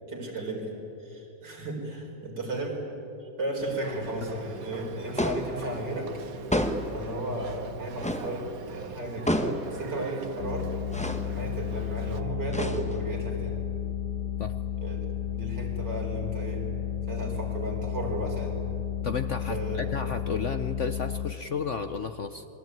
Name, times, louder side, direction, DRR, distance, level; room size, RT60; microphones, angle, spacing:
voice 1, 0.1-2.9 3.2-6.1 6.9-10.7 11.2-13.6 14.8-15.1 15.3-16.6 17.1-18.5 19.5-19.9, right 1 dB, 70° right, 0 dB, 5.2 m, -34 dB
Boat Water vehicle, 3.6-12.2, right 6 dB, 55° right, 1.5 m, -43 dB
sound 1, 5.2-5.6 6.5-7.0 8.0-8.3 9.3-9.7 10.9-11.3 12.5-13.1, left 1 dB, 5° left, 1.2 m, -29 dB
sound 2, 10.4-21.3, left 10 dB, 70° left, 1.8 m, -33 dB
voice 2, 19.0-22.5, left 5 dB, 50° left, 9 dB, 1.0 m, -32 dB
27.0 x 22.0 x 9.3 m, 2.9 s
omnidirectional pair, 2.0 m